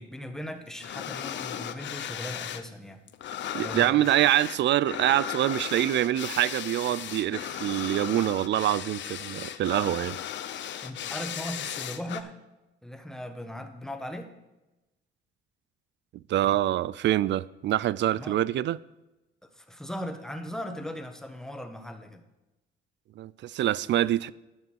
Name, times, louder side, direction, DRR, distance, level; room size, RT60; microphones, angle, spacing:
voice 1, 0.0-3.0 3.5-4.2 10.8-12.3 12.8-14.3 18.1-18.4 19.5-22.2, equal, 5° left, 1.3 m, -38 dB
sound 1, 0.8-2.7 2.9-12.2, left 10 dB, 65° left, 0.7 m, -36 dB
voice 2, 3.5-10.2 16.3-18.8 23.2-24.3, right 13 dB, 65° right, 0.4 m, -25 dB
10.5 x 8.1 x 4.7 m
cardioid pair, 90°, 20 cm